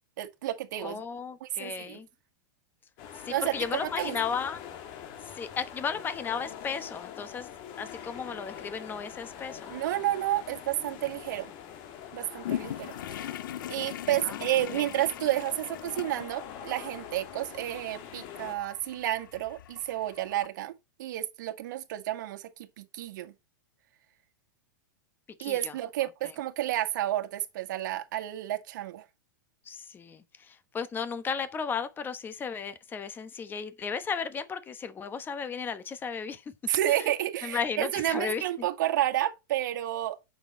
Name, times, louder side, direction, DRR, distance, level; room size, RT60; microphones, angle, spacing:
voice 1, 0.2-1.0 1.4-2.0 3.3-3.6 3.8-4.2 9.7-11.5 12.1-13.3 13.7-20.7 21.0-22.5 22.8-23.3 25.4-29.0 36.7-40.2, right 13 dB, 65° right, 1.7 m, -31 dB
voice 2, 0.8-2.1 3.2-4.6 5.4-7.5 7.8-9.7 14.2-14.4 14.7-14.9 25.4-25.7 29.7-36.4 36.9-37.0 37.4-38.4, left 6 dB, 20° left, 1.1 m, -34 dB
sound 1, 3.0-18.6, left 9 dB, 45° left, 1.7 m, -44 dB
sound 2, 12.4-20.5, left 12 dB, 80° left, 0.4 m, -41 dB
8.9 x 6.5 x 4.3 m
hypercardioid pair, 130°, 11 cm